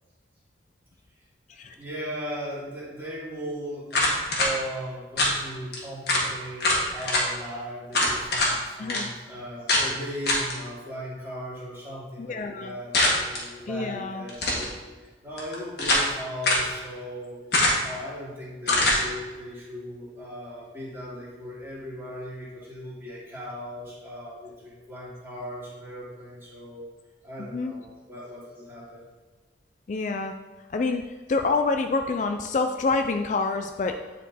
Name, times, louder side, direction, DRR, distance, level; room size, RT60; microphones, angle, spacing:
voice 1, 1.8-14.7 15.0-17.4 17.8-26.9 27.2-29.0, equal, 15° right, -8 dB, 2.5 m, -38 dB
sound 1, 3.9-4.5 5.2-5.4 5.7-5.8 6.1-6.3 6.6-7.2 7.9-8.5 8.9-9.0 9.7-9.9 10.3-10.5 12.9-13.4 14.3-14.7 15.4-16.1 16.4-16.7 17.5-17.9 18.7-19.0, left 1 dB, 60° left, 1.8 m, -23 dB
voice 2, 8.8-9.1 12.2-12.7 13.7-14.2 27.5-27.7 29.9-30.3 30.7-34.0, left 3 dB, 40° left, 6 dB, 0.3 m, -27 dB
10.0 x 4.3 x 4.2 m, 1.3 s
head